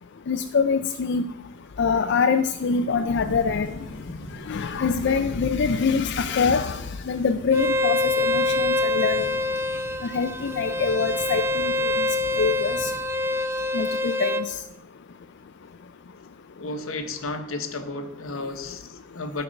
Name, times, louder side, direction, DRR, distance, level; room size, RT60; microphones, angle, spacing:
voice 1, 0.3-1.3 1.8-3.7 4.5-9.3 10.0-11.9 12.4-12.9 13.7-14.5, left 5 dB, 60° left, 7 dB, 0.4 m, -24 dB
sound 1, 3.1-13.0, equal, 20° left, 4.3 m, -43 dB
Bowed string instrument, 7.5-14.5, left 2 dB, 10° right, 0.4 m, -25 dB
voice 2, 16.5-19.4, left 2 dB, 85° left, 8 dB, 1.1 m, -33 dB
12.5 x 4.6 x 6.3 m, 0.85 s
head